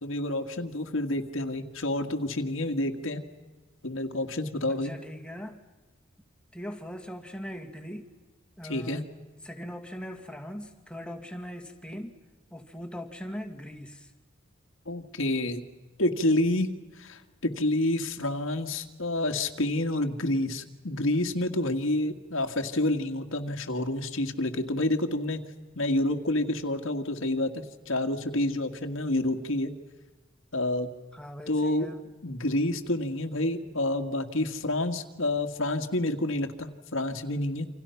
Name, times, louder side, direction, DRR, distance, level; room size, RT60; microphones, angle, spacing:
voice 1, 0.0-3.2 3.8-4.9 8.6-9.0 14.9-15.6 16.0-16.7 17.0-25.4 25.8-29.7 30.5-30.9 31.5-31.9 32.2-37.7, left 1 dB, 85° left, 5 dB, 2.0 m, -28 dB
voice 2, 4.7-5.6 6.5-8.1 8.6-9.1 9.4-12.2 12.5-14.1 31.1-32.1, equal, 5° left, 5 dB, 2.3 m, -40 dB
29.0 x 27.0 x 5.9 m, 1.2 s
head